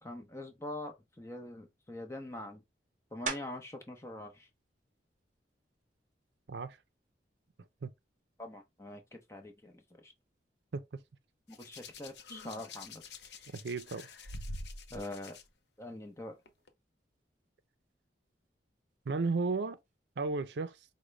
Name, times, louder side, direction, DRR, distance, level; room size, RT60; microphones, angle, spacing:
voice 1, 0.0-2.6 3.1-4.5 8.4-10.1 11.5-13.0 14.9-15.4 15.8-16.4, left 1 dB, 15° left, 0.7 m, -44 dB
sound 1, 3.3-3.8 4.4-8.8 9.3-14.5 14.8-20.4, right 5 dB, 45° right, 0.7 m, -49 dB
Hands, 11.5-15.4 16.5-16.7, left 2 dB, 75° left, 0.6 m, -46 dB
voice 2, 13.5-14.1 19.1-19.8 20.2-20.8, right 4 dB, 75° right, 0.5 m, -33 dB
5.0 x 2.1 x 3.2 m
head